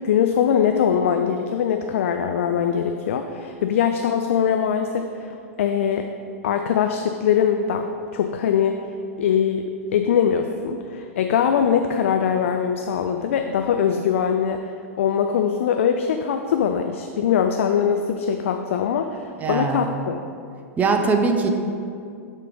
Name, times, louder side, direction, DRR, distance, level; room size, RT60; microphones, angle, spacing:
voice 1, 0.0-6.1 6.4-8.8 9.2-9.7 9.9-14.6 15.0-20.2, left 8 dB, 60° left, 6 dB, 0.4 m, -22 dB
voice 2, 19.4-19.9 20.8-21.5, right 4 dB, 20° right, 5 dB, 0.6 m, -21 dB
7.5 x 3.6 x 5.1 m, 2.4 s
figure-of-eight pair, 95°, 8 cm